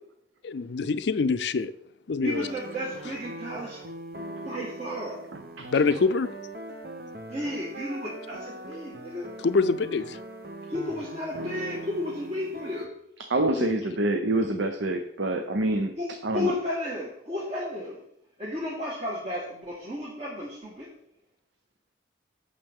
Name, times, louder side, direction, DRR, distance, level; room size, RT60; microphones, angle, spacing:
voice 1, 0.4-1.7 2.1-2.5 5.6-6.3 9.4-10.2 13.6-13.7, left 4 dB, 70° left, 0.4 m, -25 dB
voice 2, 2.2-3.8 4.4-5.2 7.3-9.3 10.7-12.9 16.0-18.0 18.4-20.9, left 1 dB, 35° right, 1.6 m, -33 dB
sound 1, 2.2-12.9, right 1 dB, 55° right, 0.8 m, -41 dB
voice 3, 13.3-15.9 16.2-16.5, right 2 dB, 80° right, 0.7 m, -26 dB
8.8 x 6.7 x 3.6 m
head